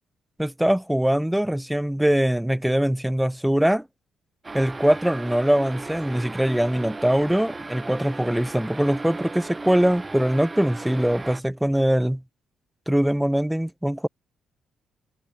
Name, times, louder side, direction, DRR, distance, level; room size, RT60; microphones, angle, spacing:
voice 1, 0.4-3.9 4.5-12.2 12.9-14.1, right 1 dB, 5° right, 0.3 m, -22 dB
sound 1, 4.4-11.4, right 3 dB, 20° right, 1.0 m, -36 dB
cardioid pair, 90°, 0 cm